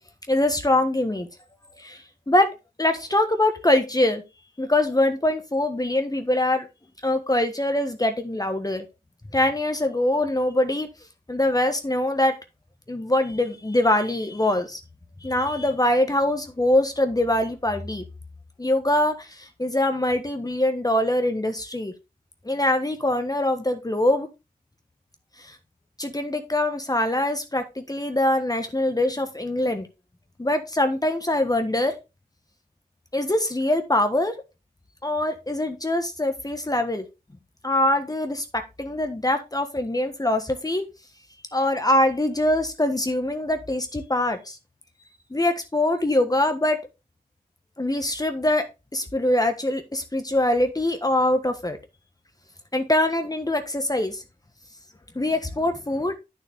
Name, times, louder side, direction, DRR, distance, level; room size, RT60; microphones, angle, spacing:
voice 1, 0.3-1.3 1.8-2.5 2.8-4.2 4.6-6.7 7.0-8.8 9.3-10.9 11.3-12.3 12.9-14.8 15.2-18.0 18.6-21.9 22.4-24.3 25.4-25.6 26.0-29.9 30.4-31.9 33.1-34.3 35.0-37.0 37.6-40.8 41.5-44.6 45.3-46.9 47.8-51.8 52.7-54.2 55.1-56.1, left 1 dB, 25° left, 7 dB, 1.4 m, -23 dB
9.0 x 6.6 x 3.5 m, 0.26 s
cardioid pair, 50°, 16 cm